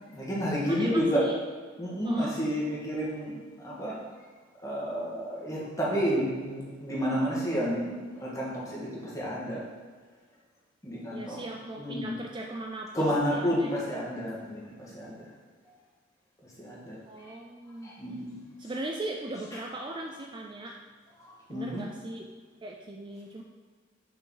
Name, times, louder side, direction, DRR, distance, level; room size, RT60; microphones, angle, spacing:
voice 1, 0.1-1.3 1.8-4.0 4.6-9.6 10.8-11.4 11.7-12.2 12.9-15.1 16.6-17.3 17.8-18.4 19.5-19.7 21.2-21.8, equal, 20° left, -5 dB, 1.7 m, -30 dB
voice 2, 0.6-1.4 2.0-2.4 11.1-13.7 17.1-17.9 18.6-20.8 21.5-22.3 22.6-23.4, right 2 dB, 25° right, 1 dB, 0.4 m, -38 dB
6.3 x 5.2 x 3.9 m, 1.5 s
head